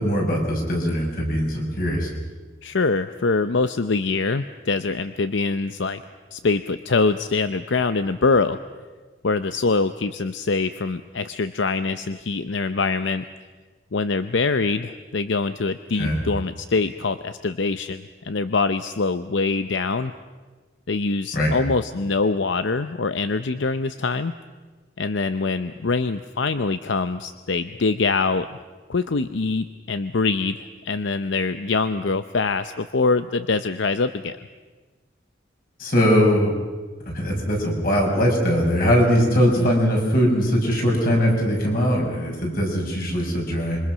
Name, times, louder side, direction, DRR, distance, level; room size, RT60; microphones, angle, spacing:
voice 1, 0.0-2.1 16.0-16.2 21.3-21.6 35.8-36.5 37.1-43.8, equal, 50° left, 0 dB, 6.0 m, -21 dB
voice 2, 2.6-6.0 6.3-8.6 9.2-13.2 13.9-20.1 20.9-24.3 25.0-28.5 28.9-34.4 39.6-39.7, left 4 dB, 80° left, 11 dB, 0.7 m, -24 dB
26.5 x 24.0 x 6.2 m, 1.3 s
head